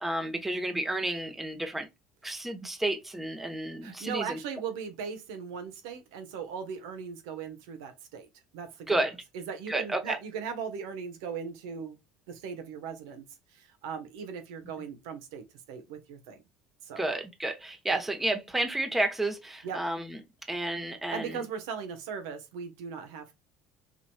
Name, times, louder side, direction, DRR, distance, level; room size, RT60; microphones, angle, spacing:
voice 1, 0.0-1.9 2.2-4.4 8.9-9.2 9.7-10.2 17.0-20.2 20.5-21.4, right 1 dB, 10° right, 1.0 m, -31 dB
voice 2, 3.8-8.3 8.5-9.0 9.3-12.0 12.3-13.3 13.5-16.4 16.8-17.0 17.9-18.0 19.6-19.8 21.1-23.3, right 6 dB, 85° right, 1.1 m, -38 dB
4.9 x 2.9 x 2.3 m
supercardioid pair, 95°, 2 cm